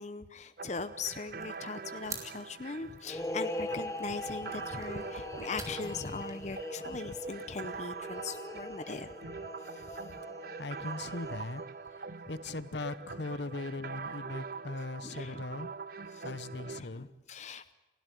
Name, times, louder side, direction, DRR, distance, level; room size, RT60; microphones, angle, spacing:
voice 1, 0.0-9.1 9.7-10.0 15.0-15.4 16.2-16.3 16.7-17.7, left 4 dB, 40° left, 12 dB, 0.7 m, -40 dB
sound 1, 0.6-16.8, right 4 dB, 50° right, 0.7 m, -44 dB
sound 2, 1.4-7.8, right 3 dB, 20° right, 3.0 m, -50 dB
sound 3, 3.0-11.6, left 1 dB, 15° left, 1.2 m, -41 dB
voice 2, 10.5-11.6 12.3-17.1, left 2 dB, 75° left, 15 dB, 1.0 m, -39 dB
29.5 x 12.5 x 9.2 m, 1.1 s
head